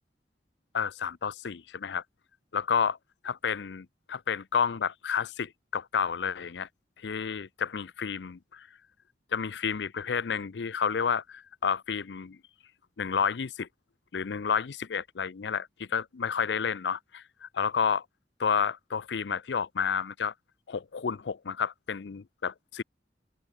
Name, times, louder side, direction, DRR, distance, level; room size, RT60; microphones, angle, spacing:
voice 1, 0.7-2.0 2.5-3.0 3.2-6.7 7.0-8.7 9.3-12.4 13.0-13.7 14.1-18.0 18.4-20.3 20.7-22.8, left 6 dB, 75° left, 0.5 m, -30 dB
open air
head